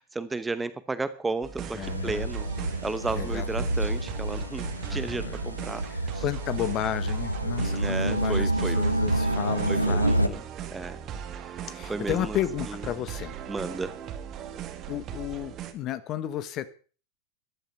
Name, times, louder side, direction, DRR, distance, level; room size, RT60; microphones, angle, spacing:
voice 1, 0.1-5.8 6.1-6.2 7.6-8.8 9.7-10.4 10.7-11.0 11.3-12.4 12.7-12.8 13.5-14.0, right 3 dB, 10° right, 14 dB, 1.0 m, -33 dB
sound 1, 1.4-15.7, right 8 dB, 30° right, 1.8 m, -39 dB
voice 2, 1.7-2.2 3.1-3.5 4.8-5.5 5.9-10.4 11.7-13.3 14.9-16.7, left 11 dB, 35° left, 15 dB, 1.2 m, -33 dB
sound 2, 1.8-10.3, right 1 dB, 90° right, 1.4 m, -28 dB
14.5 x 12.0 x 5.8 m, 0.39 s
figure-of-eight pair, 90°, 0 cm